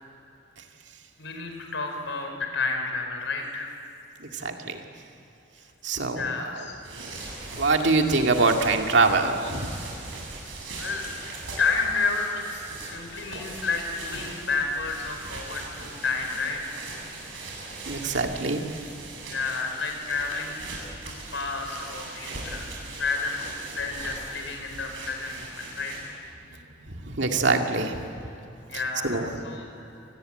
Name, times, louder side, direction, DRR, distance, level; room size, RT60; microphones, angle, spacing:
voice 1, 1.2-3.7 6.1-6.8 10.7-11.1 11.6-16.8 19.2-20.5 21.0-23.4 23.7-26.1 28.7-30.1, left 4 dB, 80° left, 3 dB, 4.9 m, -31 dB
voice 2, 4.4-4.8 5.8-6.3 7.6-9.7 17.9-18.6 27.0-28.0 29.0-29.3, right 3 dB, 70° right, 3 dB, 2.3 m, -23 dB
sound 1, 6.7-26.3, right 3 dB, 90° right, 7.7 m, -40 dB
26.5 x 19.5 x 9.1 m, 2.8 s
head